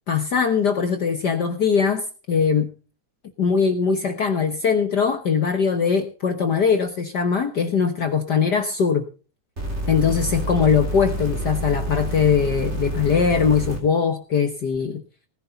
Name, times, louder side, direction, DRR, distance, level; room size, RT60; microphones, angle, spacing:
voice 1, 0.1-2.7 3.4-9.0 9.9-15.0, left 6 dB, 60° left, 6 dB, 1.0 m, -21 dB
sound 1, 9.6-13.8 14.7-14.8, right 1 dB, 20° right, 4.0 m, -28 dB
19.0 x 11.0 x 4.0 m, 0.36 s
omnidirectional pair, 3.5 m